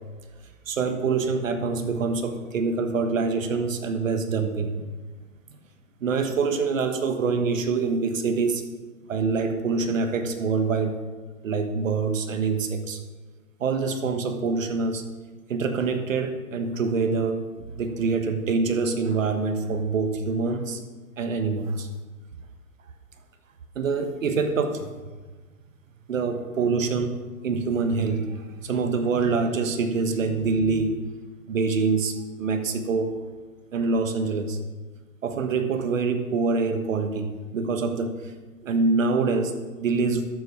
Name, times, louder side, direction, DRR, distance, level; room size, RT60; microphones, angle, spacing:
voice 1, 0.7-4.8 6.0-8.6 9.1-11.0 11.4-13.0 13.6-15.0 15.5-20.8 21.2-21.9 23.7-24.9 26.1-27.2 27.4-31.0 31.5-33.2 33.7-34.6 35.2-38.3 38.6-40.3, right 4 dB, 60° right, 7 dB, 1.5 m, -25 dB
12.5 x 7.4 x 4.9 m, 1.3 s
hypercardioid pair, 165°, 45 cm